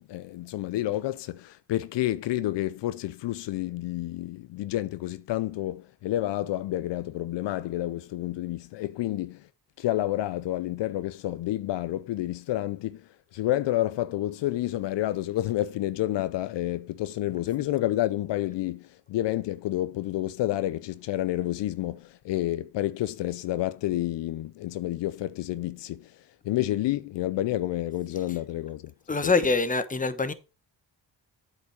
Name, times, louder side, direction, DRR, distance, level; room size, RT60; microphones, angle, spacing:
voice 1, 0.0-9.5 9.8-13.0 13.3-26.1 26.4-28.9 29.2-29.3, left 15 dB, 80° left, 0.6 m, -29 dB
voice 2, 29.1-30.3, left 3 dB, 20° left, 1.1 m, -24 dB
8.4 x 5.5 x 4.6 m
cardioid pair, 75°, 42 cm